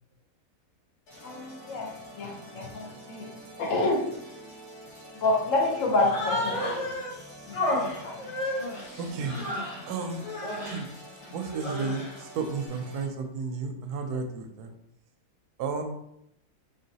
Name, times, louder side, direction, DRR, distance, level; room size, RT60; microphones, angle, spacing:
sound 1, 1.1-13.1, equal, 80° left, 1.8 m, -47 dB
voice 1, 1.2-3.3 3.6-4.1 5.1-6.9 7.5-8.3, left 2 dB, 60° left, 2 dB, 1.0 m, -28 dB
Human voice, 6.0-7.1 7.5-9.9 10.2-10.9 11.4-12.2, left 1 dB, 30° left, 0.7 m, -32 dB
voice 2, 9.0-9.4 9.9-10.2 10.5-10.9 11.3-14.7 15.6-15.8, right 4 dB, 80° right, 5 dB, 1.1 m, -32 dB
3.8 x 3.5 x 2.8 m, 0.79 s
omnidirectional pair, 1.7 m